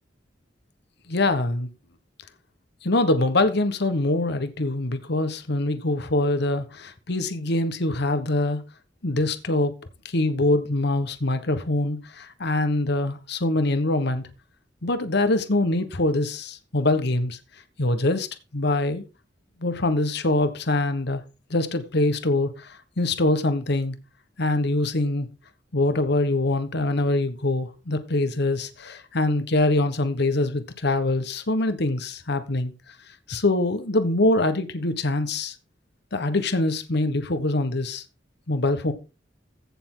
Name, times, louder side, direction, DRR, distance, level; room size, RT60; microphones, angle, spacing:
voice 1, 1.1-1.7 2.8-8.6 9.0-9.7 10.0-14.3 14.8-17.4 17.8-18.3 18.5-19.0 19.6-21.2 21.5-24.0 24.4-25.3 25.7-32.9 33.3-35.5 36.1-38.0 38.5-38.9, left 2 dB, 60° left, 1.3 m, -24 dB
15.5 x 6.9 x 3.8 m
head